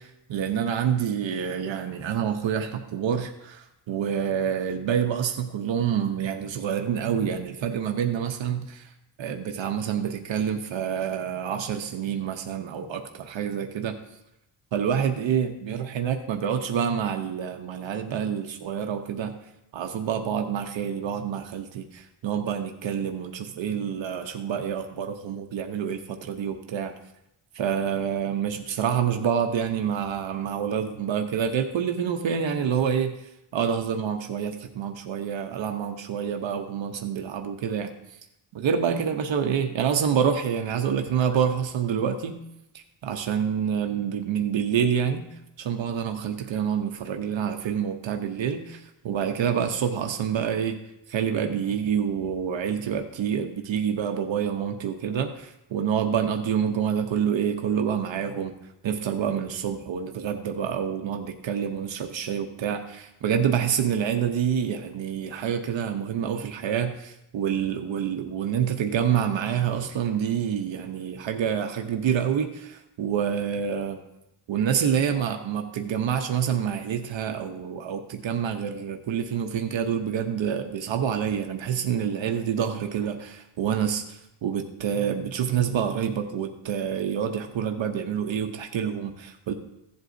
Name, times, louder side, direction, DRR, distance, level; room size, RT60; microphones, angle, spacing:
voice 1, 0.0-8.9 9.2-14.0 14.7-19.3 19.7-26.9 27.5-33.2 33.5-37.9 38.5-42.4 43.0-45.3 45.6-50.8 51.1-58.5 58.8-74.0 74.5-89.5, right 8 dB, 70° right, 5 dB, 0.9 m, -27 dB
15.5 x 7.9 x 2.6 m, 0.86 s
wide cardioid pair, 135°, 47 cm